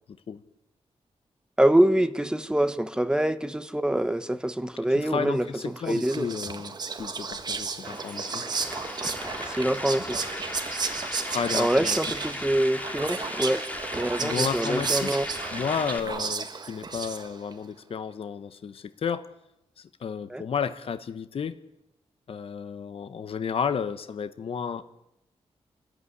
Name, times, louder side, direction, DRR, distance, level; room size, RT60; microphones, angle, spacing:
voice 1, 1.6-6.3 9.4-10.2 11.5-13.6 13.9-15.2 20.3-20.4, right 1 dB, 5° right, 11 dB, 1.0 m, -25 dB
voice 2, 5.0-8.4 11.1-12.0 14.2-15.2 15.5-19.3 19.8-21.6 22.3-24.8, left 6 dB, 55° left, 12 dB, 0.9 m, -32 dB
Whispering, 5.6-17.5, right 4 dB, 40° right, 1.5 m, -33 dB
sound 1, 7.8-16.0, left 1 dB, 15° left, 2.8 m, -37 dB
28.0 x 14.0 x 9.7 m, 0.88 s
wide cardioid pair, 170°, 11 cm